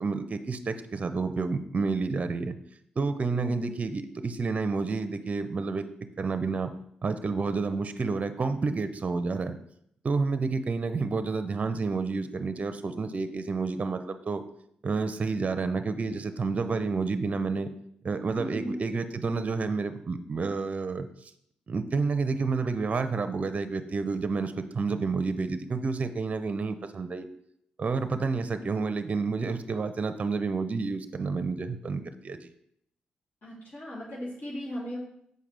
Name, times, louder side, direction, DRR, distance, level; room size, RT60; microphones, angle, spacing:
voice 1, 0.0-2.6 3.0-5.8 6.2-6.7 7.0-9.6 10.0-14.4 14.8-17.7 18.0-21.3 21.7-27.3 27.8-32.5, right 4 dB, 40° right, 10 dB, 0.6 m, -29 dB
voice 2, 3.3-3.8 18.4-18.8 28.6-28.9 33.4-35.0, equal, 50° left, -7 dB, 2.6 m, -38 dB
6.6 x 5.0 x 3.3 m, 0.72 s
supercardioid pair, 50°, 3 cm